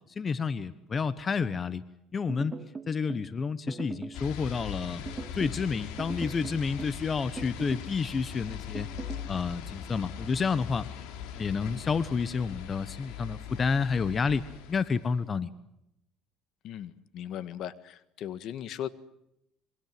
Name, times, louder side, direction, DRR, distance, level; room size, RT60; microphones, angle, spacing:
voice 1, 0.2-1.8 2.1-2.5 2.9-5.1 5.3-8.9 9.3-10.9 11.3-14.4 14.7-15.5, left 5 dB, 30° left, 15 dB, 1.2 m, -30 dB
sound 1, 2.3-3.3 3.7-4.2 5.1-5.6 6.0-7.0 7.4-7.9 8.7-9.3, right 4 dB, 20° right, 1.9 m, -40 dB
sound 2, 4.1-15.2, left 9 dB, 80° left, 3.6 m, -41 dB
voice 2, 16.6-18.9, left 10 dB, 60° left, 15 dB, 1.6 m, -38 dB
27.5 x 23.5 x 7.7 m, 0.81 s
cardioid pair, 115°, 0 cm